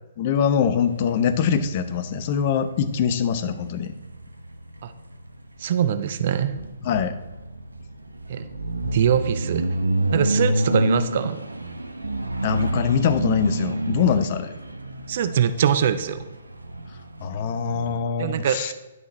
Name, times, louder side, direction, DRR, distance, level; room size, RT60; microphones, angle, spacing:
voice 1, 0.2-3.9 6.8-7.2 12.4-14.5 17.2-18.7, left 7 dB, 40° left, 11 dB, 0.8 m, -23 dB
sound 1, 0.8-18.0, right 1 dB, 90° right, 0.8 m, -29 dB
voice 2, 5.6-6.6 8.3-8.4 8.8-9.7 10.1-11.4 15.1-16.2 18.2-18.7, right 8 dB, 50° right, 12 dB, 0.6 m, -23 dB
11.0 x 6.0 x 4.2 m, 1.1 s
figure-of-eight pair, 125°, 0 cm